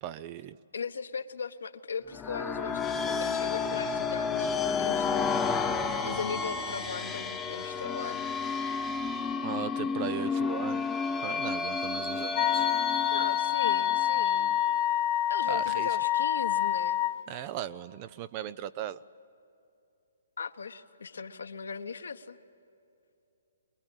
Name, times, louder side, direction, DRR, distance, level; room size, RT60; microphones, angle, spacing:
voice 1, 0.0-0.6 9.4-10.9 11.2-12.7 15.5-15.9 17.3-19.0, right 11 dB, 35° right, 15 dB, 0.5 m, -38 dB
voice 2, 0.7-5.3 5.6-5.8 6.0-8.3 13.1-14.6 15.3-17.0 20.4-22.4, left 5 dB, 75° left, 7 dB, 1.2 m, -38 dB
sound 1, 2.1-14.6, left 5 dB, 10° left, 1.1 m, -31 dB
Wind instrument woodwind instrument, 12.4-17.2, left 12 dB, 40° left, 0.9 m, -27 dB
23.5 x 22.0 x 9.0 m, 2.7 s
hypercardioid pair, 140°, 0 cm